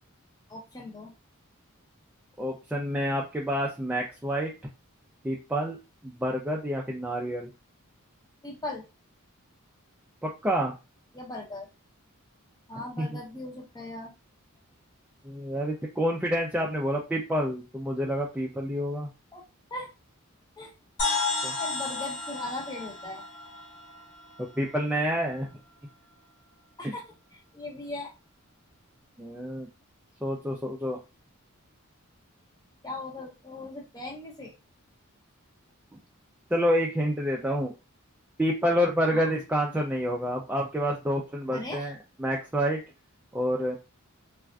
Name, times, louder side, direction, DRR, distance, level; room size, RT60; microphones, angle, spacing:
voice 1, 0.5-1.1 8.4-8.8 11.1-11.7 12.7-14.1 19.3-19.4 19.7-19.9 20.6-20.7 21.6-23.3 26.8-27.0 27.3-28.1 32.8-34.5 39.1-39.3 41.5-41.9, left 2 dB, 20° left, -1 dB, 0.7 m, -39 dB
voice 2, 2.4-4.5 5.2-5.8 6.0-7.5 10.2-10.7 13.0-13.1 15.2-19.1 21.4-21.5 24.4-25.5 26.8-26.9 29.2-29.7 30.2-31.0 36.5-37.7 38.4-42.8 43.3-43.8, equal, 5° right, -1 dB, 0.3 m, -28 dB
sound 1, 21.0-24.8, left 4 dB, 50° left, 1.3 m, -32 dB
3.3 x 2.4 x 2.3 m, 0.28 s
head